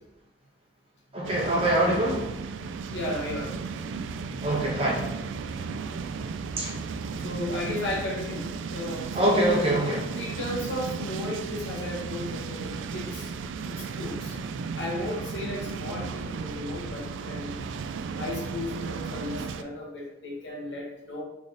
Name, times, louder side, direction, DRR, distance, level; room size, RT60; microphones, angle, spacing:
voice 1, 1.1-2.3 4.4-5.1 6.6-6.7 9.1-10.1, right 1 dB, 30° right, -3 dB, 1.0 m, -24 dB
sound 1, 1.2-19.6, right 5 dB, 90° right, 0.3 m, -35 dB
voice 2, 2.9-3.6 4.3-4.4 7.2-9.5 10.2-13.3 13.7-14.3 14.8-17.6 18.2-21.2, left 1 dB, 75° left, -2 dB, 1.2 m, -35 dB
4.3 x 3.6 x 3.3 m, 0.92 s
head